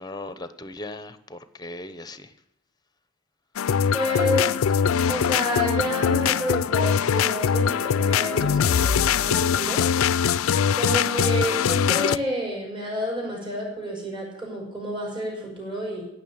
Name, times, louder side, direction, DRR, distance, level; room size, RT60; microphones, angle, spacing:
voice 1, 0.0-2.3, left 2 dB, 20° left, 12 dB, 0.8 m, -38 dB
sound 1, 3.6-12.2, left 7 dB, 85° left, 0.4 m, -22 dB
voice 2, 3.9-4.5 5.1-9.8 10.7-16.0, equal, 25° right, -2 dB, 6.1 m, -29 dB
16.0 x 6.6 x 8.9 m, 0.86 s
head